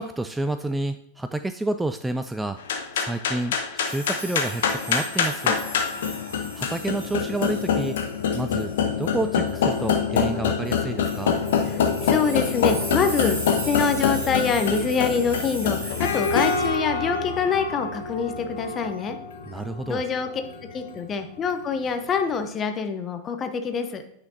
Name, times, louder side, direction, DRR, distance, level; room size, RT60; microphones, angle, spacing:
voice 1, 0.0-2.6 2.9-5.6 6.5-8.0 8.3-8.7 9.0-11.4 19.5-20.0, right 2 dB, 5° right, 10 dB, 0.3 m, -29 dB
sound 1, 2.6-22.1, left 6 dB, 60° left, 1.0 m, -26 dB
sound 2, 3.8-10.0 10.7-10.8 11.0-16.7, right 1 dB, 75° right, 3.0 m, -38 dB
voice 2, 11.7-19.2 19.9-20.3 20.7-24.0, left 5 dB, 25° left, 8 dB, 0.9 m, -25 dB
9.4 x 6.2 x 2.8 m, 0.75 s
figure-of-eight pair, 90°, 0 cm